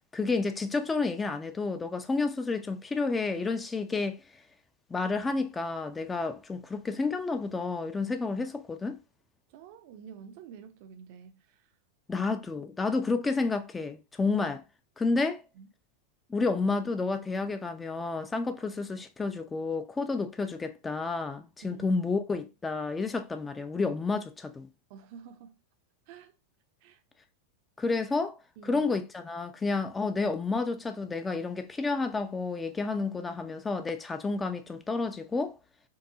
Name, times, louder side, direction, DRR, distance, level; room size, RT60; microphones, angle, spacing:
voice 1, 0.1-4.2 4.9-9.0 12.1-14.6 15.0-15.4 16.3-24.7 27.8-28.4 28.6-35.6, left 3 dB, 15° left, 0.4 m, -30 dB
voice 2, 9.5-11.6 12.1-12.3 15.1-15.2 15.5-15.7 21.6-21.9 24.9-25.6 26.1-26.3 26.8-27.0 28.6-28.9, right 7 dB, 45° right, 0.6 m, -49 dB
4.6 x 2.6 x 2.7 m
figure-of-eight pair, 90°, 0 cm